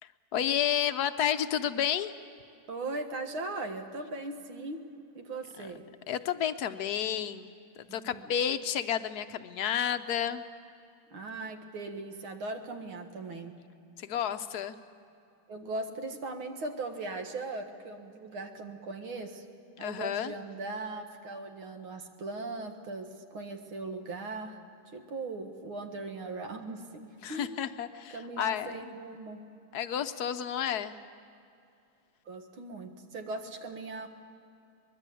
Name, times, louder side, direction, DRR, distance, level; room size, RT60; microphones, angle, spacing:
voice 1, 0.3-2.1 6.1-7.5 7.9-10.4 14.0-14.8 19.8-20.3 27.2-28.8 29.7-31.0, left 9 dB, 65° left, 10 dB, 1.0 m, -31 dB
voice 2, 2.7-4.8 5.1-5.8 7.9-8.2 11.1-13.6 15.5-19.5 19.8-24.6 24.9-27.7 28.1-29.4 32.3-34.1, right 2 dB, 75° right, 5 dB, 2.5 m, -39 dB
24.0 x 21.5 x 8.4 m, 2.5 s
omnidirectional pair, 2.3 m